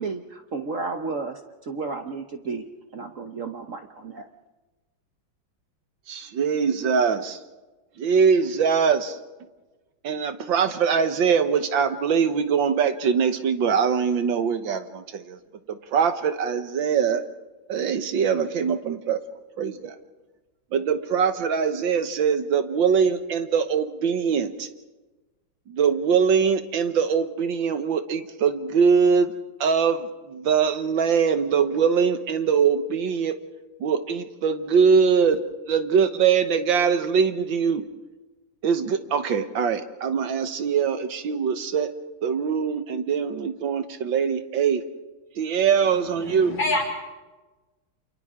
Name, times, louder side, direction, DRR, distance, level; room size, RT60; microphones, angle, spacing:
voice 1, 0.0-2.6 2.9-4.3, right 4 dB, 50° right, 5 dB, 1.1 m, -32 dB
voice 2, 6.1-7.4 8.0-9.2 10.0-15.4 15.7-17.2 17.7-19.2 19.6-20.0 20.7-24.7 25.7-29.3 29.6-33.4 33.8-35.4 35.7-37.8 38.6-41.9 42.2-44.8 45.4-46.6, right 6 dB, 70° right, 9 dB, 1.8 m, -22 dB
voice 3, 46.1-46.8, left 2 dB, 70° left, 0 dB, 5.5 m, -26 dB
29.0 x 28.0 x 3.7 m, 1.2 s
omnidirectional pair, 2.2 m